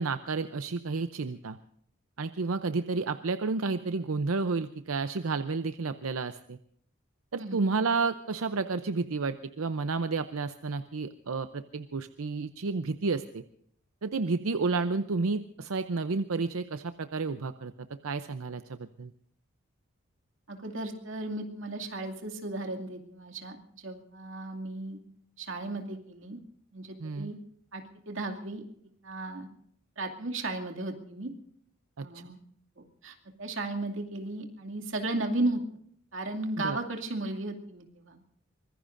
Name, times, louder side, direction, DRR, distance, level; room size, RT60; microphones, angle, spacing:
voice 1, 0.0-1.6 2.2-6.6 7.3-13.4 14.0-17.7 18.0-19.1 27.0-27.3 32.0-32.1 36.6-36.8, right 4 dB, 90° right, 10 dB, 0.7 m, -31 dB
voice 2, 20.5-25.0 25.4-26.4 26.7-27.4 27.7-28.6 29.0-29.5 30.0-31.3 32.0-32.4 32.8-35.6 36.1-38.2, right 2 dB, 65° right, 3 dB, 2.4 m, -35 dB
24.5 x 21.0 x 2.6 m, 0.68 s
head